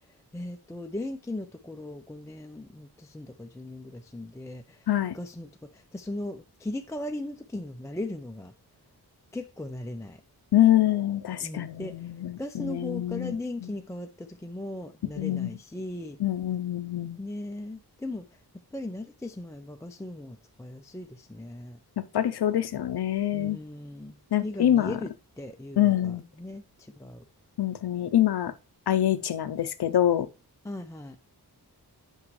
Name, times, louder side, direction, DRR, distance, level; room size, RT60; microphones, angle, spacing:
voice 1, 0.1-4.9 5.1-8.5 9.3-10.2 11.4-16.2 17.2-18.4 18.7-21.8 23.3-25.1 25.4-27.2 30.6-31.2, left 1 dB, 10° left, 0.4 m, -38 dB
voice 2, 4.9-5.2 10.5-13.4 13.6-13.7 15.2-15.6 16.2-17.2 22.0-23.6 24.3-25.0 25.8-26.2 27.6-28.5 28.9-30.3, left 12 dB, 75° left, 0.7 m, -25 dB
8.4 x 5.4 x 3.1 m
wide cardioid pair, 155°, 40 cm